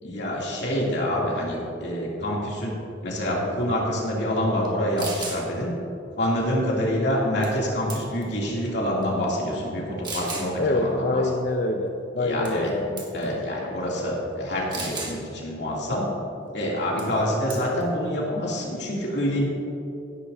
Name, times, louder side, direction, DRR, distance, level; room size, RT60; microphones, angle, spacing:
voice 1, 0.0-5.7 6.2-11.2 12.2-12.7 13.1-16.1 16.5-19.5, equal, 65° left, -4 dB, 2.8 m, -26 dB
sound 1, 4.6-4.7 5.0-5.4 7.4-7.6 7.9-8.3 9.0-9.1 10.0-10.5 12.4-12.7 13.0-13.2 14.7-15.2 17.0-17.2 17.5-17.8, right 3 dB, 25° right, 1.6 m, -34 dB
voice 2, 10.6-13.0, left 2 dB, 45° left, 3 dB, 0.6 m, -25 dB
17.0 x 10.5 x 2.7 m, 2.8 s
head